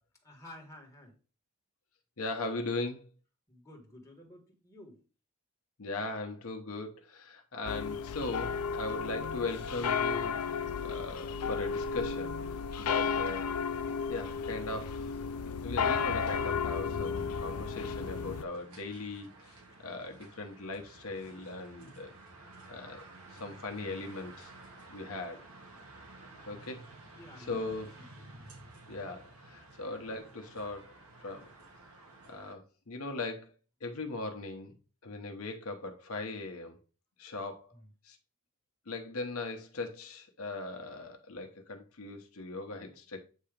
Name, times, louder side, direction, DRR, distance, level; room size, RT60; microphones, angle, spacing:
voice 1, 0.2-1.2 3.5-5.0 27.1-28.1 28.3-28.5 37.7-37.9, left 1 dB, 15° left, 1.6 m, -52 dB
voice 2, 2.2-3.0 5.8-12.3 12.8-13.4 13.8-15.1 15.6-19.6 19.8-22.1 22.7-23.0 23.3-24.5 24.9-25.5 26.5-26.9 27.5-28.0 28.9-30.9 31.2-31.5 32.3-33.5 33.8-34.7 35.0-36.8 37.2-37.7 38.0-38.2 38.9-43.2, left 2 dB, 75° left, 1.0 m, -39 dB
sound 1, 7.7-18.4, left 6 dB, 90° left, 0.5 m, -33 dB
sound 2, 17.1-32.5, right 2 dB, 80° right, 1.5 m, -53 dB
8.3 x 2.9 x 5.0 m
head